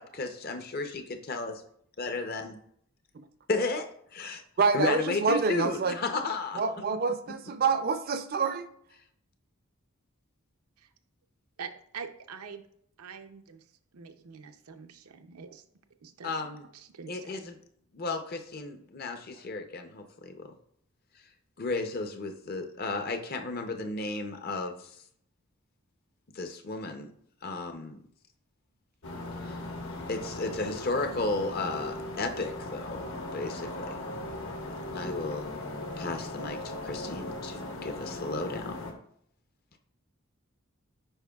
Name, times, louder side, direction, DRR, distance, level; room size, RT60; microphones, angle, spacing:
voice 1, 0.0-1.6 2.0-2.6 3.5-4.4 4.7-6.6 16.2-16.7 17.1-17.6 17.9-20.5 21.6-24.9 26.3-27.1 27.4-28.0 29.4-29.6 30.1-33.0 33.3-33.7 34.9-35.5 36.0-38.8, left 3 dB, 45° left, 6 dB, 0.6 m, -33 dB
voice 2, 4.6-6.0 6.6-8.7, right 4 dB, 45° right, 11 dB, 0.4 m, -27 dB
voice 3, 11.6-12.6 13.0-13.6 13.9-15.7 16.0-17.5, right 6 dB, 90° right, 6 dB, 0.6 m, -45 dB
sound 1, 29.0-38.9, left 1 dB, 65° left, 1.2 m, -38 dB
8.8 x 5.1 x 2.3 m, 0.67 s
head